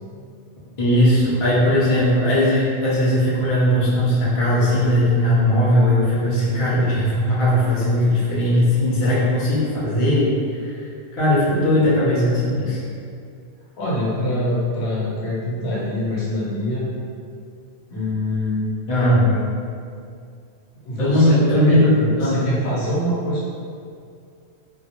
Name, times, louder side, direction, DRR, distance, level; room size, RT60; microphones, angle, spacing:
voice 1, 0.8-10.9 11.1-12.8 18.9-19.4 21.0-22.5, left 1 dB, 35° left, -8 dB, 0.6 m, -18 dB
voice 2, 13.8-16.8 17.9-18.7 20.8-23.5, equal, 75° left, -7 dB, 0.9 m, -24 dB
2.3 x 2.1 x 2.8 m, 2.4 s
omnidirectional pair, 1.1 m